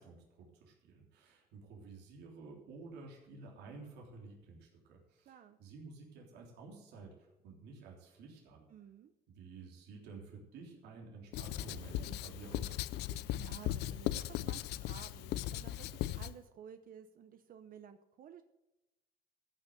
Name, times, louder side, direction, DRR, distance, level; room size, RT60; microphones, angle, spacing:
voice 1, 0.0-8.7 9.3-12.8, right 4 dB, 80° right, -1 dB, 3.4 m, -52 dB
voice 2, 5.3-5.6 8.7-9.1 13.1-14.6 14.9-18.4, right 8 dB, 55° right, 9 dB, 0.8 m, -54 dB
Writing, 11.3-16.3, left 14 dB, 80° left, 0.5 m, -38 dB
sound 1, 11.5-12.4 12.7-13.5 13.9-14.0 14.4-14.5 15.0-16.5 16.8-17.4, left 6 dB, 45° left, 1.7 m, -61 dB
14.0 x 6.4 x 7.9 m, 0.96 s
cardioid pair, 110°, 17 cm